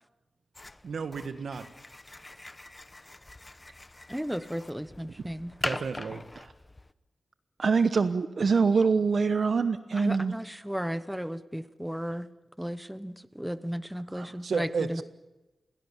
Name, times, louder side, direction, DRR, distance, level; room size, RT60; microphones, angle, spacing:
sound 1, 0.5-6.9, left 2 dB, 20° left, 0.9 m, -42 dB
voice 1, 0.8-1.7 5.6-6.2 14.4-15.0, right 5 dB, 75° right, 10 dB, 1.6 m, -32 dB
voice 2, 4.1-5.5 9.9-12.3 12.6-15.0, equal, 5° right, 13 dB, 1.0 m, -34 dB
voice 3, 7.6-10.3 14.1-14.3, right 5 dB, 60° right, 11 dB, 1.0 m, -25 dB
28.0 x 22.5 x 7.3 m, 1.1 s
wide cardioid pair, 100°, 0 cm